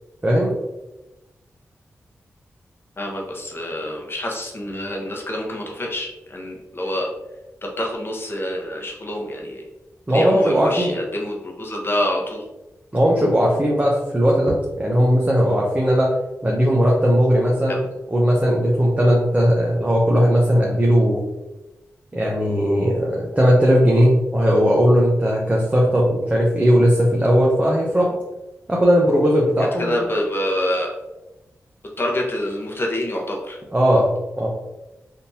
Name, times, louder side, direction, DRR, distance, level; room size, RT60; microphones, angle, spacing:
voice 1, 0.2-0.5 10.1-11.0 12.9-16.1 16.4-17.8 18.1-21.2 22.1-28.1 28.7-30.0 33.7-34.5, equal, 25° right, -3 dB, 0.8 m, -18 dB
voice 2, 3.0-7.1 7.8-9.6 10.1-12.4 17.7-17.8 29.8-30.9 32.0-33.6, left 1 dB, 40° left, 0 dB, 0.9 m, -26 dB
3.5 x 2.8 x 2.7 m, 0.99 s
cardioid pair, 40°, 6 cm